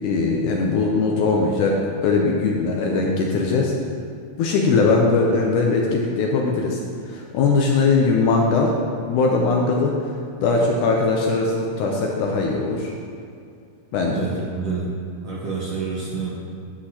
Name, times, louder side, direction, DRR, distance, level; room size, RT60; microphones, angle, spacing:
voice 1, 0.0-1.8 2.0-3.7 4.4-6.8 7.1-8.7 9.0-9.9 10.4-12.9 13.9-14.2, left 4 dB, 80° left, -1 dB, 1.9 m, -20 dB
voice 2, 14.1-14.9 15.2-16.3, right 4 dB, 65° right, -6 dB, 1.7 m, -28 dB
9.8 x 8.3 x 2.9 m, 2.3 s
omnidirectional pair, 4.1 m